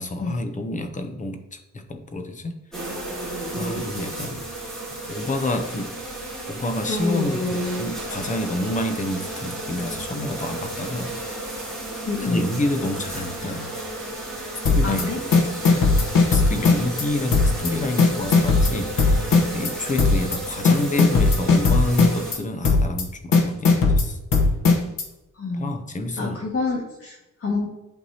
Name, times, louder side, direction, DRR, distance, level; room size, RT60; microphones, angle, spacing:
voice 1, 0.0-2.6 3.5-4.5 5.1-6.0 6.5-11.1 12.2-13.7 14.7-15.2 15.8-15.9 16.3-24.2 25.5-26.4, left 2 dB, 25° left, 7 dB, 0.6 m, -28 dB
sound 1, 2.7-22.3, right 2 dB, ahead, 2.4 m, -33 dB
voice 2, 6.9-7.9 12.1-12.5 14.8-15.2 25.4-25.8 26.2-27.7, left 3 dB, 45° left, -2 dB, 1.8 m, -27 dB
sound 2, 14.7-15.0 15.3-17.0 17.3-17.7 18.0-19.7 20.0-20.4 20.7-22.4 22.6-23.0 23.3-25.0, left 4 dB, 90° left, 1.1 m, -17 dB
11.0 x 4.5 x 2.8 m, 0.95 s
wide cardioid pair, 175°, 32 cm